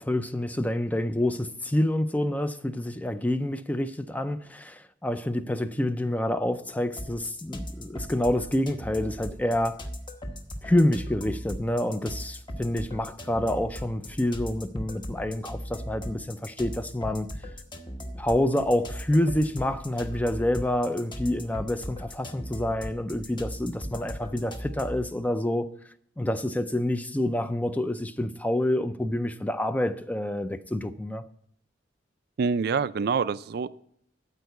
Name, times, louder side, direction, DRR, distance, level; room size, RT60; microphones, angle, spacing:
voice 1, 0.0-9.8 10.6-17.3 18.2-31.3, left 1 dB, 10° left, 0.4 m, -27 dB
sound 1, 7.0-25.1, equal, 25° left, 1.0 m, -38 dB
voice 2, 32.4-33.7, right 5 dB, 55° right, 0.4 m, -26 dB
12.5 x 4.6 x 8.1 m
head